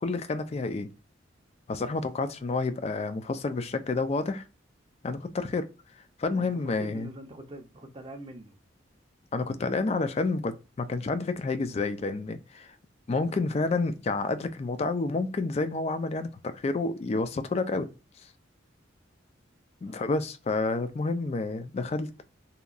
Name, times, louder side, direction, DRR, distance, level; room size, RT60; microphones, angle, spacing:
voice 1, 0.0-0.9 1.7-4.4 5.0-5.7 6.2-7.1 9.3-12.7 13.1-17.9 19.8-22.1, left 3 dB, 35° left, 0.3 m, -29 dB
voice 2, 6.3-8.6 19.9-20.1, right 1 dB, 25° right, 0.5 m, -44 dB
2.8 x 2.3 x 2.4 m
head